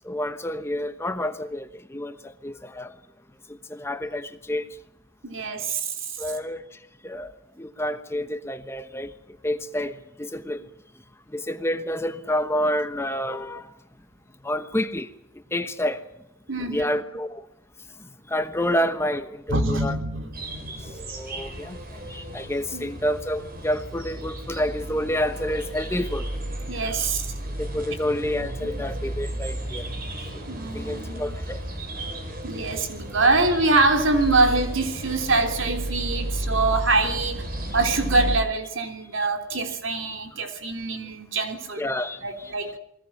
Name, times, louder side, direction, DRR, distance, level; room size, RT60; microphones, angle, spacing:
voice 1, 0.1-1.7 1.9-2.9 3.7-4.6 6.2-6.6 7.0-7.3 7.6-9.1 9.4-9.9 10.2-10.6 11.3-13.6 14.4-15.1 15.5-16.0 16.7-17.3 18.3-19.9 21.1-21.8 22.1-26.2 27.6-29.9 30.7-31.6 41.8-42.2, left 1 dB, 10° left, 1.0 m, -28 dB
voice 2, 5.2-6.2 16.5-16.8 19.5-20.9 22.7-22.9 26.7-27.3 28.6-28.7 30.5-31.4 32.4-37.4 37.7-41.8 42.2-42.7, right 3 dB, 65° right, 3.3 m, -24 dB
sound 1, 20.3-38.4, right 1 dB, 45° right, 4.7 m, -33 dB
29.5 x 21.5 x 6.0 m
head